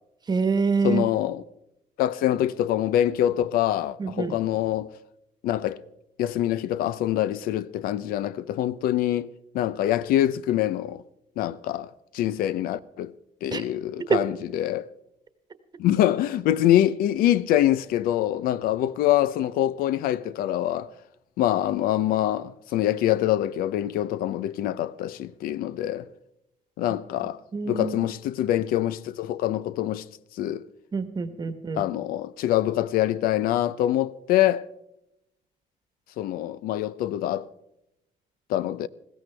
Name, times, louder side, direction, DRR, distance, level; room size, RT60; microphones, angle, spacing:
voice 1, 0.3-1.0 4.0-4.4 13.5-13.6 14.1-14.2 27.5-28.0 30.9-31.8, right 5 dB, 30° right, 1.2 m, -25 dB
voice 2, 0.8-1.4 2.0-4.9 5.4-5.8 6.2-11.0 11.4-13.1 13.4-14.9 15.8-20.9 21.4-26.1 26.8-27.4 27.7-30.0 30.4-30.7 31.8-34.6 36.2-37.5 38.5-38.9, left 12 dB, 90° left, 0.6 m, -25 dB
20.5 x 16.0 x 3.4 m
cardioid pair, 125°, 15 cm